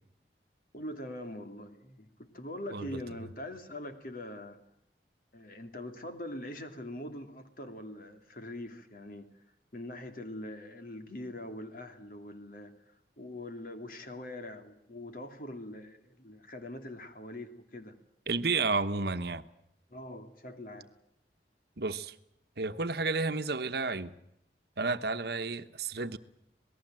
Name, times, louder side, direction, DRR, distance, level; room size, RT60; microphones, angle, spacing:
voice 1, 0.7-4.6 5.3-9.3 9.7-12.7 13.2-17.9 19.9-20.9, left 1 dB, 50° left, 2.8 m, -43 dB
voice 2, 18.3-19.4 21.8-22.1 22.6-24.1 24.8-26.2, right 4 dB, 60° right, 1.1 m, -31 dB
27.0 x 19.0 x 7.7 m
head